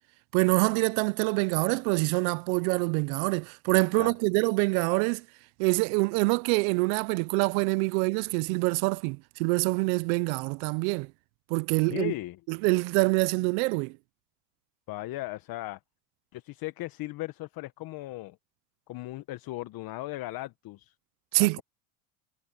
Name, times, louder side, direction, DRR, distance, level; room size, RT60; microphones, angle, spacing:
voice 1, 0.3-5.2 5.6-11.1 11.5-12.1 12.5-14.0 21.3-21.6, right 28 dB, 75° right, 0.6 m, -25 dB
voice 2, 11.8-12.4 14.9-15.8 16.3-18.4 18.9-20.9 21.4-21.6, left 17 dB, 60° left, 1.2 m, -37 dB
supercardioid pair, 85°, 41 cm